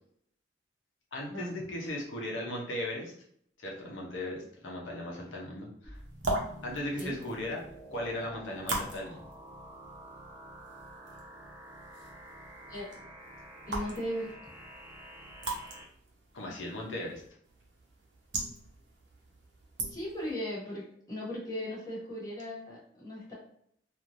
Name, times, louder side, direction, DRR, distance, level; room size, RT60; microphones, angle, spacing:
voice 1, 1.1-3.1 3.6-6.0 6.6-7.6 7.9-9.2 16.3-17.2, left 1 dB, 90° left, -2 dB, 0.7 m, -37 dB
sound 1, 5.8-15.8, right 1 dB, 10° right, 0.7 m, -49 dB
sound 2, 5.9-20.3, right 2 dB, 70° right, 0.8 m, -41 dB
voice 2, 13.7-14.5 19.9-23.3, equal, 20° left, -7 dB, 1.2 m, -37 dB
3.1 x 2.4 x 2.5 m, 0.67 s
head